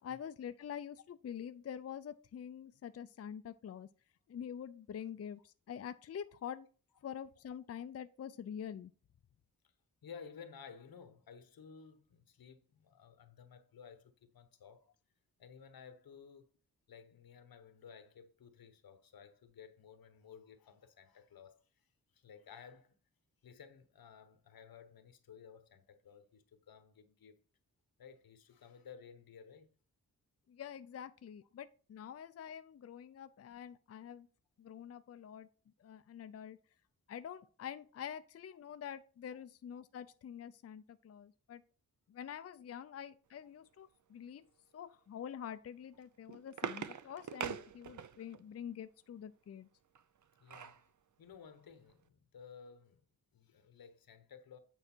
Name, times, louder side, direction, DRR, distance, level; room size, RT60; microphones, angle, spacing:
voice 1, 0.0-3.9 4.3-6.7 7.0-8.9 30.5-34.3 34.6-35.5 35.8-36.6 37.1-41.6 42.1-44.5 44.7-49.7, left 8 dB, 45° left, 0.4 m, -46 dB
voice 2, 10.0-14.9 15.4-16.4 16.9-21.9 22.1-23.0 23.4-27.4 28.0-29.7 50.4-50.8 51.2-53.0 53.3-54.6, left 6 dB, 85° left, 1.2 m, -55 dB
sound 1, 45.9-48.4 50.0-50.8 51.3-51.4 51.7-51.9, right 8 dB, 55° right, 0.7 m, -43 dB
9.1 x 4.8 x 4.4 m
wide cardioid pair, 100°, 35 cm